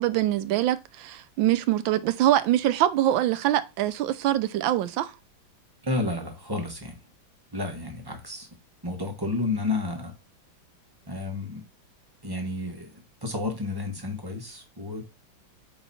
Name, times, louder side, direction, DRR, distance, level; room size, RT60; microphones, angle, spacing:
voice 1, 0.0-5.1, right 13 dB, 75° right, 1.3 m, -24 dB
voice 2, 5.8-7.0 7.5-8.5 8.8-10.1 11.1-11.6 12.2-15.0, left 2 dB, 15° right, 1.2 m, -31 dB
8.0 x 3.1 x 4.2 m
omnidirectional pair, 2.2 m